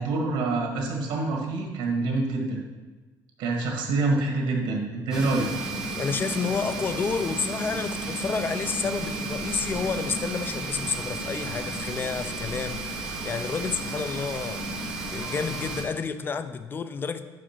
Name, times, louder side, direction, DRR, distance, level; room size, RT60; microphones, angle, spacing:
voice 1, 0.0-2.6 3.4-5.7, right 3 dB, 80° right, 0 dB, 1.6 m, -26 dB
sound 1, 5.1-15.8, right 3 dB, 10° right, 1.1 m, -33 dB
voice 2, 5.9-14.6 15.1-17.2, left 5 dB, 25° left, 10 dB, 0.4 m, -30 dB
5.5 x 5.0 x 5.7 m, 1.3 s
cardioid pair, 135°, 8 cm